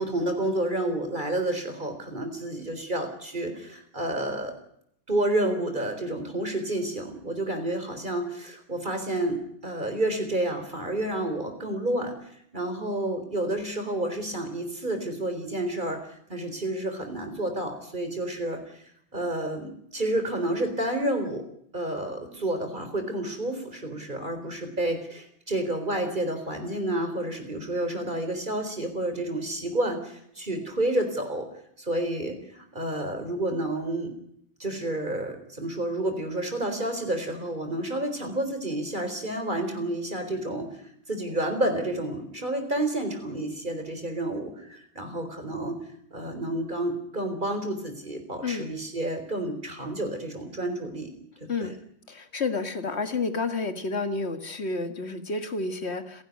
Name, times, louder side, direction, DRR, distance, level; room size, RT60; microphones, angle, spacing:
voice 1, 0.0-4.5 5.1-12.2 12.5-18.8 19.1-21.4 21.7-31.5 31.8-34.1 34.6-45.8 46.1-51.1 51.6-51.7, right 1 dB, 45° right, 6 dB, 4.2 m, -30 dB
voice 2, 52.1-56.2, left 3 dB, 75° left, 8 dB, 2.1 m, -30 dB
29.5 x 11.5 x 9.4 m, 0.72 s
omnidirectional pair, 1.1 m